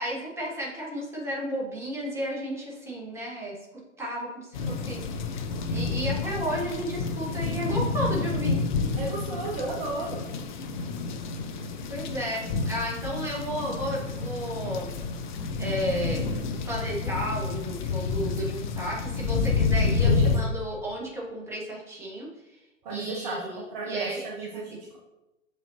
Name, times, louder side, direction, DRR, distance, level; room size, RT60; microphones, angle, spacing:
voice 1, 0.0-3.6 4.0-5.3 5.7-8.6 11.9-15.0 15.6-16.3 16.7-22.6 22.9-24.7, equal, 5° right, -4 dB, 1.4 m, -33 dB
sound 1, 4.5-20.4, left 4 dB, 35° left, 0.6 m, -29 dB
voice 2, 9.0-10.2 20.0-20.3 22.8-25.0, right 3 dB, 30° right, -2 dB, 0.9 m, -34 dB
7.0 x 5.2 x 2.8 m, 0.98 s
figure-of-eight pair, 115°, 39 cm